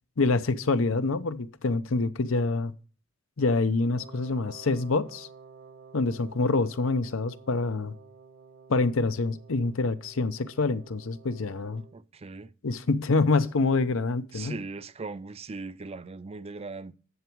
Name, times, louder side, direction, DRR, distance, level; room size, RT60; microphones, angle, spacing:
voice 1, 0.2-2.7 3.4-5.3 5.9-7.9 8.7-11.8 12.6-14.6, left 3 dB, 70° left, 0.7 m, -26 dB
Wind instrument woodwind instrument, 3.9-12.0, right 5 dB, 50° right, 1.0 m, -51 dB
voice 2, 11.9-12.5 14.3-16.9, right 3 dB, 30° right, 0.5 m, -39 dB
11.0 x 7.0 x 4.6 m
head